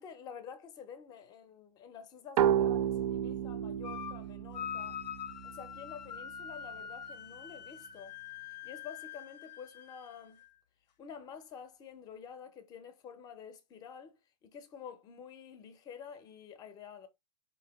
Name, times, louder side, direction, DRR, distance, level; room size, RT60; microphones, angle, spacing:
voice 1, 0.0-5.0 5.4-8.1 8.6-10.4 11.0-14.2 14.4-17.1, left 7 dB, 20° left, 0.5 m, -49 dB
sound 1, 2.4-5.8, right 10 dB, 55° right, 0.5 m, -31 dB
sound 2, 3.8-4.2 4.5-10.6, left 9 dB, 85° left, 0.7 m, -44 dB
4.4 x 2.7 x 2.9 m
hypercardioid pair, 145°, 21 cm